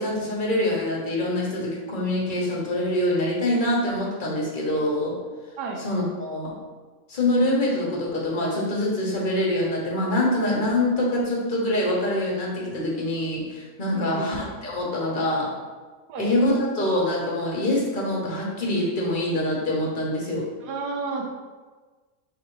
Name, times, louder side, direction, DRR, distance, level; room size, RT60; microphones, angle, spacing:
voice 1, 0.0-5.2 5.8-6.5 7.1-15.5 16.2-20.5, left 1 dB, 35° left, -4 dB, 1.0 m, -25 dB
voice 2, 13.9-14.3 16.1-16.3 20.6-21.3, right 4 dB, 85° right, 0 dB, 1.2 m, -31 dB
4.7 x 3.5 x 3.1 m, 1.4 s
omnidirectional pair, 1.7 m